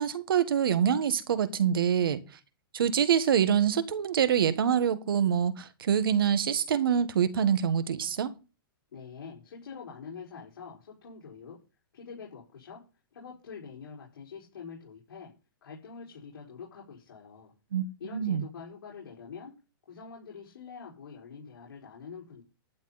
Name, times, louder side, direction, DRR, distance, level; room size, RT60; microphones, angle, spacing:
voice 1, 0.0-2.2 2.7-8.3 17.7-17.8 18.1-18.5, right 8 dB, 70° right, 1.5 m, -25 dB
voice 2, 8.9-11.6 11.9-12.8 13.1-15.3 15.6-17.5 18.0-19.5 19.9-22.4, left 5 dB, 75° left, 4.8 m, -45 dB
11.5 x 10.0 x 4.1 m
hypercardioid pair, 175°, 12 cm